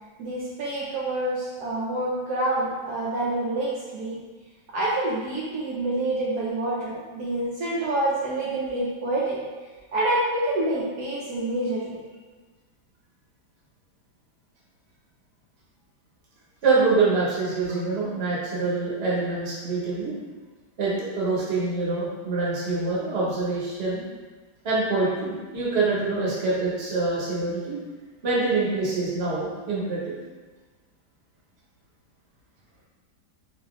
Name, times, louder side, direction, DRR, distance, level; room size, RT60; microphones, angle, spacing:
voice 1, 0.2-4.2 4.7-9.4 9.9-12.0, right 1 dB, 70° right, -7 dB, 1.2 m, -27 dB
voice 2, 16.6-20.1 20.8-24.0 24.6-27.8 28.2-30.1, right 3 dB, 40° right, -6 dB, 1.1 m, -25 dB
4.0 x 2.7 x 3.6 m, 1.3 s
omnidirectional pair, 1.9 m